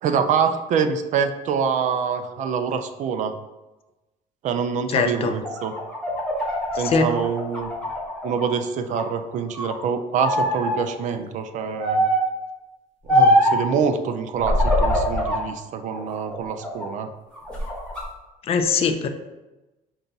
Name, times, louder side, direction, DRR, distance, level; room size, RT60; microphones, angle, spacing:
voice 1, 0.0-3.4 4.4-5.7 6.8-7.7 8.2-12.1 13.0-17.1, right 6 dB, 50° right, 8 dB, 0.4 m, -25 dB
voice 2, 4.9-5.3 6.8-7.1 18.5-19.1, left 5 dB, 35° left, 7 dB, 0.4 m, -21 dB
sound 1, 5.3-8.5 8.9-9.8 10.2-10.8 11.8-12.3 13.1-13.6 14.4-15.4 15.9-16.9 17.3-18.0, equal, 5° left, 1.1 m, -22 dB
5.5 x 2.3 x 3.8 m, 1.1 s
cardioid pair, 140°, 16 cm